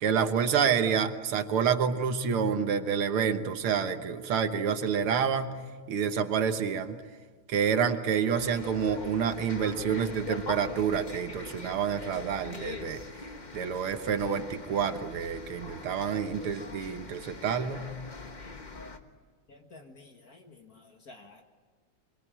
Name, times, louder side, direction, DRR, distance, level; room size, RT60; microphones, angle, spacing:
voice 1, 0.0-5.5 5.9-7.0 7.5-13.0 13.5-17.9, right 7 dB, 80° right, 8 dB, 2.1 m, -28 dB
sound 1, 8.4-19.0, left 3 dB, 25° left, 1.2 m, -42 dB
voice 2, 19.5-21.4, left 3 dB, 45° left, 3 dB, 1.9 m, -52 dB
25.0 x 23.5 x 8.8 m, 1.5 s
omnidirectional pair, 2.3 m